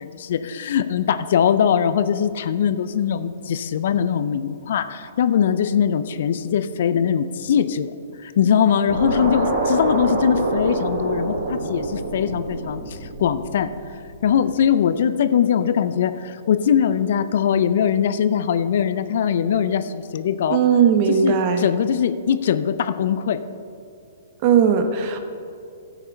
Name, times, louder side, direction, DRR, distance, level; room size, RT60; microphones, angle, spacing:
voice 1, 0.0-7.9 8.2-13.7 14.2-20.6 21.1-23.4, left 8 dB, 60° left, 12 dB, 0.5 m, -21 dB
sound 1, 8.9-14.1, right 2 dB, 80° right, 2.3 m, -26 dB
voice 2, 20.5-21.7 24.4-25.2, right 7 dB, 45° right, 7 dB, 1.1 m, -18 dB
12.5 x 8.1 x 4.5 m, 2.5 s
hypercardioid pair, 120°, 0 cm